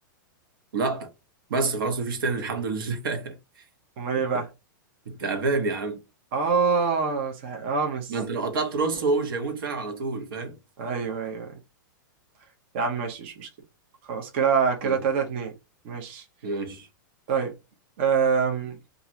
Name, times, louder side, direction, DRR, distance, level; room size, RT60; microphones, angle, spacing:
voice 1, 0.7-1.1 1.5-3.4 4.2-4.4 5.1-6.0 8.1-10.6 14.8-15.0 16.4-16.9, right 3 dB, 80° right, 0.9 m, -28 dB
voice 2, 4.0-4.5 6.3-8.1 10.8-11.5 12.7-13.5 14.1-15.5 15.8-16.2 17.3-17.5 18.0-18.8, right 5 dB, 35° right, 0.6 m, -25 dB
2.6 x 2.4 x 2.9 m
supercardioid pair, 175°, 11 cm